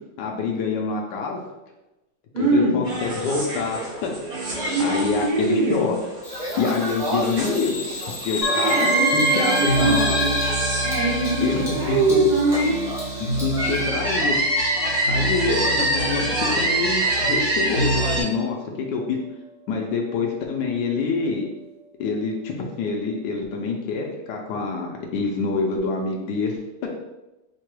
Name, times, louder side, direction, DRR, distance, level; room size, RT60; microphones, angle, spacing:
voice 1, 0.2-1.4 2.4-4.1 4.8-5.9 6.5-7.8 8.2-10.2 11.4-11.6 11.9-12.0 13.4-14.4 15.1-18.6 18.9-19.2 19.7-21.5 22.0-26.6, left 4 dB, 75° left, 0 dB, 1.0 m, -26 dB
voice 2, 2.3-2.9 4.7-5.9 8.5-10.4 10.8-12.9, right 2 dB, 55° right, -6 dB, 0.5 m, -22 dB
sound 1, 2.8-18.2, right 1 dB, 85° right, 2.6 m, -25 dB
Bird vocalization bird call bird song, 6.2-13.8, left 3 dB, 5° right, 0.6 m, -33 dB
sound 2, 8.4-22.1, right 1 dB, 55° left, 0.9 m, -34 dB
4.7 x 2.2 x 3.1 m, 1.0 s
omnidirectional pair, 2.3 m